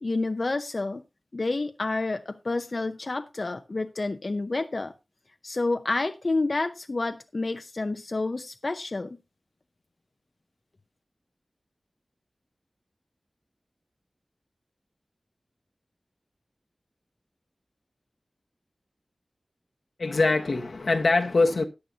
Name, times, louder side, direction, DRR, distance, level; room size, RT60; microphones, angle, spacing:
voice 1, 0.0-1.0 1.3-4.9 5.4-9.2, left 3 dB, 55° left, 0.6 m, -29 dB
voice 2, 20.0-21.6, left 3 dB, 85° left, 1.3 m, -23 dB
14.5 x 10.0 x 2.8 m
wide cardioid pair, 70°, 0 cm